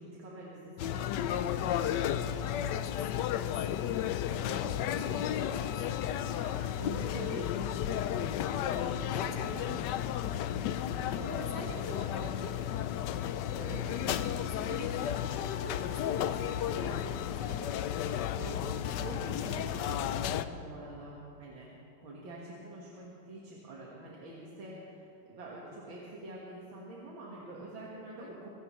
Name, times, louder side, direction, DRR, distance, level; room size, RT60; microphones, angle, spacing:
voice 1, 0.0-1.6 2.0-2.6 4.4-5.2 6.3-8.1 8.4-9.9 10.7-12.0 13.6-14.1 14.6-14.8 16.7-17.0 18.3-21.7 22.0-28.5, right 2 dB, 65° right, -4 dB, 2.4 m, -46 dB
sound 1, 0.8-20.5, left 10 dB, 80° left, 1.0 m, -33 dB
voice 2, 2.6-6.5 9.1-10.0 11.1-12.6 13.1-15.0 15.3-16.9 17.3-18.4 28.1-28.3, left 3 dB, 55° left, 2 dB, 1.9 m, -45 dB
24.0 x 16.0 x 3.2 m, 2.7 s
omnidirectional pair, 2.4 m